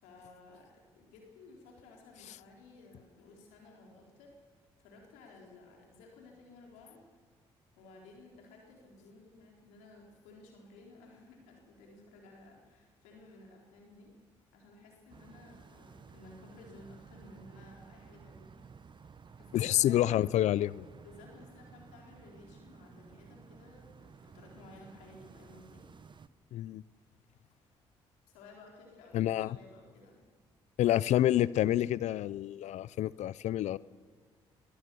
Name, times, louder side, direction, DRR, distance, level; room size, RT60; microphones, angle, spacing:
voice 1, 0.0-4.3 4.8-7.0 7.8-14.1 14.5-18.5 19.4-20.2 21.0-25.9 28.3-30.2, left 2 dB, 85° left, 0 dB, 4.0 m, -55 dB
sound 1, 15.1-26.3, right 5 dB, 40° right, 0.9 m, -54 dB
voice 2, 19.5-20.9 26.5-26.8 29.1-29.6 30.8-33.8, left 13 dB, 70° left, 21 dB, 0.5 m, -28 dB
22.5 x 16.5 x 7.0 m, 1.5 s
supercardioid pair, 55°, 12 cm